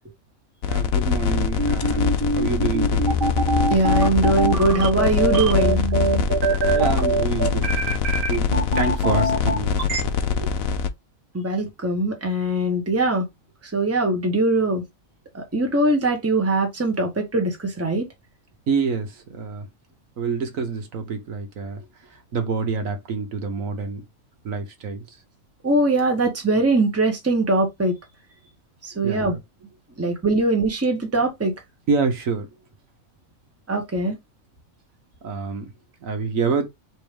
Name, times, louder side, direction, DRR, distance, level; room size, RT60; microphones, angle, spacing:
sound 1, 0.6-10.9, left 6 dB, 85° left, 1.1 m, -24 dB
voice 1, 0.7-3.2 6.7-7.8 8.3-8.4 8.8-9.8 10.3-10.5 18.7-19.7 20.2-21.8 22.1-24.0 24.4-25.0 29.0-29.4 31.9-32.5 35.2-35.7 36.0-36.7, right 4 dB, 75° right, 1.4 m, -27 dB
sound 2, 1.6-10.0, right 2 dB, 40° right, 1.3 m, -23 dB
voice 2, 3.7-5.8 11.3-13.2 13.7-14.8 15.3-18.1 25.6-27.9 29.0-29.4 30.0-31.5 33.7-34.1, right 2 dB, 10° right, 1.1 m, -21 dB
4.5 x 3.1 x 3.3 m
omnidirectional pair, 1.4 m